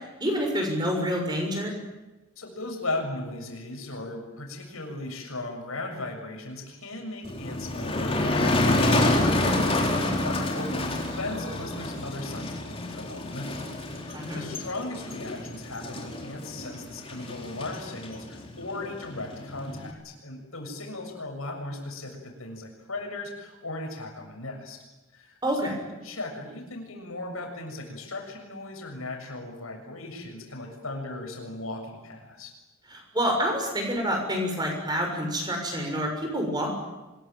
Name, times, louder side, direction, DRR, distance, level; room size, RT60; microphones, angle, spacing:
voice 1, 0.2-1.8 14.1-14.5 25.4-25.7 32.9-36.7, equal, 20° right, 2 dB, 6.7 m, -28 dB
voice 2, 2.4-13.7 14.0-24.8 25.1-25.6 26.0-32.5, left 2 dB, 90° left, 3 dB, 7.0 m, -37 dB
Motor vehicle (road), 7.2-19.9, left 1 dB, 25° left, 4.1 m, -28 dB
25.5 x 21.5 x 9.0 m, 1.1 s
head